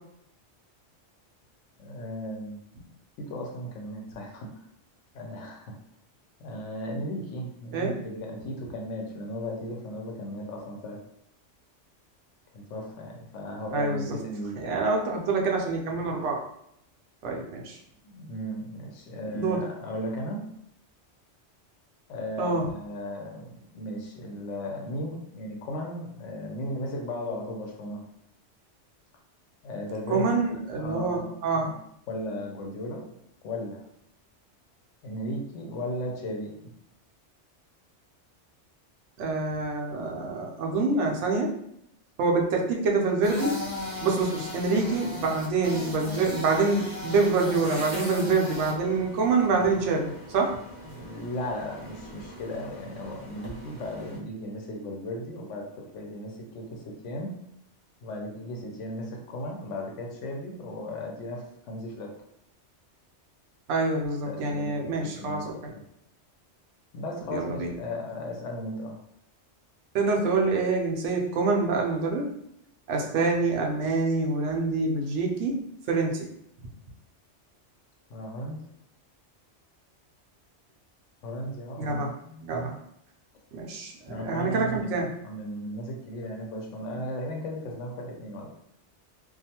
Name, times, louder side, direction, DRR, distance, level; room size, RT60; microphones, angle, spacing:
voice 1, 1.8-2.6 3.2-4.5 5.1-5.8 6.4-11.0 12.5-14.8 18.0-20.5 22.1-28.0 29.6-30.3 30.8-31.4 31.6-31.8 32.1-33.2 33.4-33.8 35.0-36.7 50.9-57.3 58.0-62.1 64.2-65.8 66.9-69.0 78.1-78.6 81.2-82.8 84.1-85.0 85.2-88.5, equal, 85° left, 1 dB, 1.0 m, -36 dB
voice 2, 13.7-14.2 14.6-16.4 17.2-17.8 19.3-19.6 22.4-22.7 30.1-31.7 39.2-41.5 42.2-50.5 63.7-65.7 67.3-67.8 69.9-72.3 72.9-75.6 75.9-76.3 81.8-82.1 82.4-82.7 83.5-85.1, right 3 dB, 80° right, 0 dB, 0.9 m, -26 dB
sound 1, 43.2-54.2, left 2 dB, 45° right, 0.7 m, -39 dB
2.5 x 2.3 x 2.8 m, 0.75 s
omnidirectional pair, 1.2 m